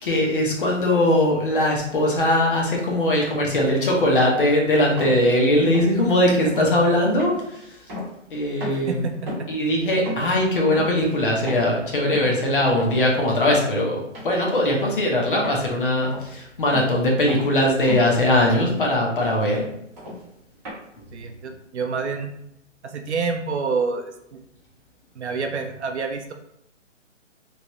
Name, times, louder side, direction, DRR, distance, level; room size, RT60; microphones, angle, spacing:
voice 1, 0.0-7.8 8.3-9.0 9.5-19.7, left 1 dB, 45° left, -1 dB, 0.8 m, -20 dB
sound 1, 5.0-5.2 5.7-6.0 6.4-6.7 7.2-8.3 8.6-8.9 9.3-9.6 10.0-10.3 10.7-11.0 11.5-11.7 12.1-12.4 12.8-13.1 13.4-13.7 14.1-14.4 14.7-15.0 15.4-15.7 16.0-16.3 16.7-17.0 17.3-17.6 17.9-18.2 18.5-18.8 19.2-19.5 20.0-20.2 20.6-20.7, left 1 dB, 15° right, 1.1 m, -35 dB
voice 2, 8.7-9.5 21.1-22.3 22.8-24.4 25.2-26.3, right 5 dB, 65° right, 5 dB, 0.5 m, -28 dB
3.1 x 2.5 x 2.9 m, 0.77 s
hypercardioid pair, 160°, 38 cm